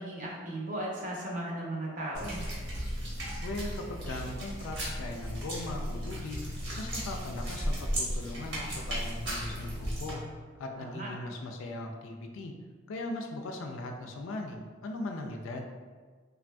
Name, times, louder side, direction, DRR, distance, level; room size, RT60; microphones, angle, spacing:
voice 1, 0.0-2.4 10.8-11.1, right 1 dB, 40° right, -4 dB, 0.6 m, -36 dB
sound 1, 2.1-10.1, equal, 65° right, 1.0 m, -35 dB
voice 2, 3.4-6.4 6.8-10.2 10.6-12.5 12.9-15.7, left 2 dB, 75° left, 3 dB, 0.3 m, -39 dB
3.4 x 2.5 x 2.2 m, 1.5 s
head